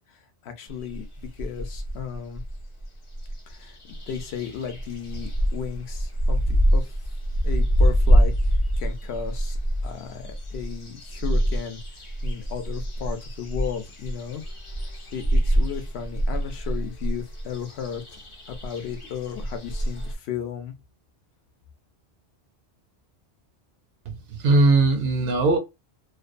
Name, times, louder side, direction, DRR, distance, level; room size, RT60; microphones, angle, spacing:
voice 1, 0.1-1.1 1.4-2.4 3.5-6.8 7.4-8.3 8.8-9.6 9.8-14.4 14.8-18.2 18.5-20.7, left 8 dB, 75° left, 0.8 m, -35 dB
sound 1, 0.7-2.9 3.1-20.1, equal, 40° left, 0.5 m, -25 dB
voice 2, 24.1-25.6, right 3 dB, 70° right, 0.8 m, -20 dB
2.6 x 2.1 x 2.4 m
omnidirectional pair, 1.1 m